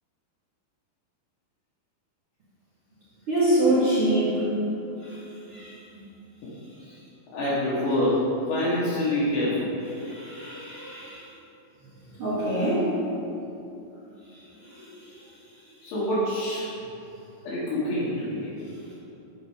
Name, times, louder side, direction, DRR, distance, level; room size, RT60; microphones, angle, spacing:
voice 1, 3.3-4.4 5.0-5.2 5.5-5.7 10.0-11.2 12.2-12.8 14.7-14.8, right 1 dB, 45° right, -11 dB, 1.8 m, -25 dB
voice 2, 7.3-9.7 15.8-16.7 17.5-18.5, left 1 dB, 70° left, -12 dB, 3.6 m, -26 dB
9.8 x 5.3 x 5.4 m, 2.9 s
omnidirectional pair, 5.3 m